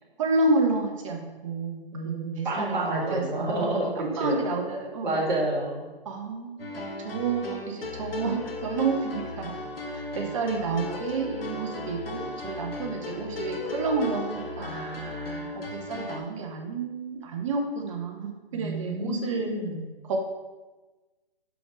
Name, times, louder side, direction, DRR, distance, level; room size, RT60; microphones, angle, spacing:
voice 1, 0.2-5.2 6.0-9.6 9.9-14.7 15.5-19.6 20.1-20.2, right 3 dB, 35° right, 2 dB, 0.9 m, -30 dB
voice 2, 1.9-4.4 5.0-5.9 14.6-15.7 18.5-19.9, right 1 dB, 50° right, -3 dB, 2.4 m, -30 dB
sound 1, 6.6-16.2, left 2 dB, 70° left, 1.3 m, -36 dB
6.3 x 5.0 x 5.0 m, 1.2 s
figure-of-eight pair, 140°, 30 cm